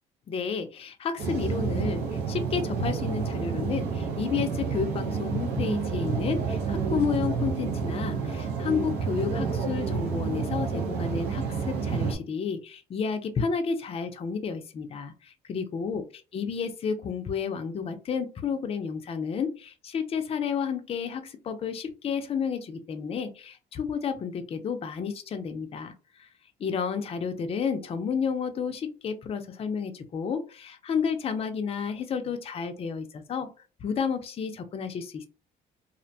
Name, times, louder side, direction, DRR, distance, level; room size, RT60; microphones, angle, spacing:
voice 1, 0.3-16.0 16.3-25.9 26.6-33.5 33.8-35.3, left 6 dB, 35° left, 8 dB, 0.4 m, -31 dB
sound 1, 1.2-12.2, right 5 dB, 80° right, 0.7 m, -29 dB
2.4 x 2.1 x 2.6 m, 0.33 s
cardioid pair, 110°, 17 cm